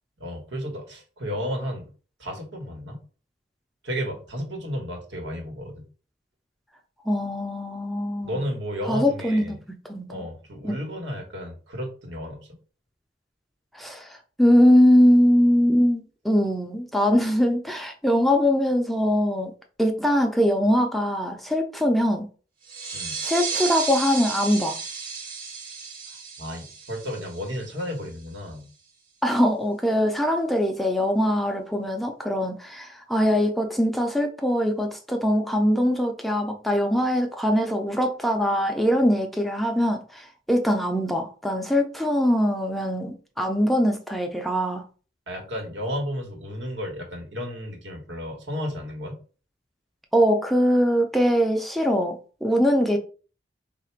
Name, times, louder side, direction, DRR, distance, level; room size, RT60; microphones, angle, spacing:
voice 1, 0.2-1.9 2.2-3.0 3.8-5.9 8.2-9.5 10.1-12.6 22.9-23.2 26.1-28.7 45.3-49.2, equal, 80° right, 1.3 m, -33 dB
voice 2, 7.1-8.4 8.9-9.6 9.8-10.2 10.6-10.8 13.7-19.5 19.8-22.3 23.2-24.8 29.2-44.8 50.1-53.0, equal, ahead, 0.4 m, -22 dB
sound 1, 22.6-28.0, right 5 dB, 55° right, 1.1 m, -33 dB
3.4 x 2.4 x 4.4 m
head